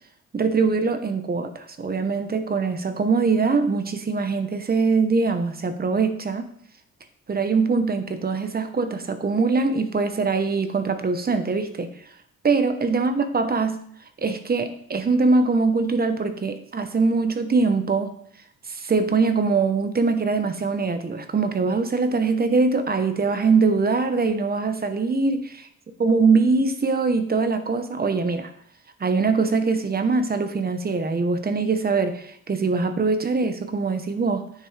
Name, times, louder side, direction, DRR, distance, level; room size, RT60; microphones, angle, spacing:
voice 1, 0.3-6.5 7.3-11.9 12.4-13.8 14.2-18.1 18.7-25.6 26.0-28.5 29.0-34.5, right 4 dB, 30° right, 8 dB, 1.1 m, -22 dB
9.4 x 7.1 x 3.4 m, 0.65 s
cardioid pair, 90°, 30 cm